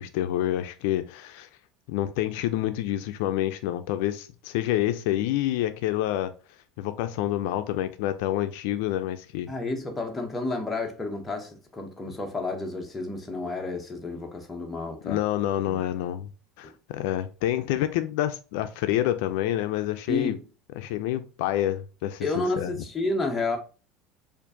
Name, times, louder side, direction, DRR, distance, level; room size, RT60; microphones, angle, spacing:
voice 1, 0.0-1.5 1.9-6.3 6.8-9.5 15.0-16.3 16.6-20.4 20.8-22.7, left 13 dB, 70° left, 0.3 m, -28 dB
voice 2, 9.5-15.2 20.1-20.4 22.2-23.6, left 2 dB, 10° left, 0.6 m, -30 dB
4.4 x 2.4 x 2.6 m
cardioid pair, 165°, 0 cm